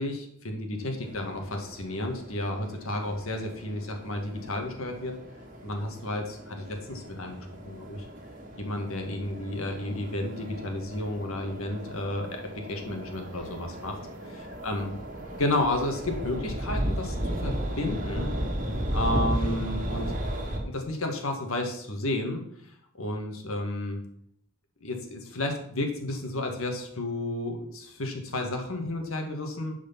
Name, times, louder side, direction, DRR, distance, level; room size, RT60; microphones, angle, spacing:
voice 1, 0.0-5.1 5.6-8.1 8.6-12.3 12.7-13.9 14.2-14.9 15.4-18.3 18.9-20.1 20.6-22.4 23.0-24.0 24.8-29.8, left 1 dB, 85° left, 3 dB, 1.9 m, -32 dB
sound 1, 1.0-20.6, equal, 40° right, 1.7 m, -35 dB
11.0 x 5.0 x 5.9 m, 0.70 s
head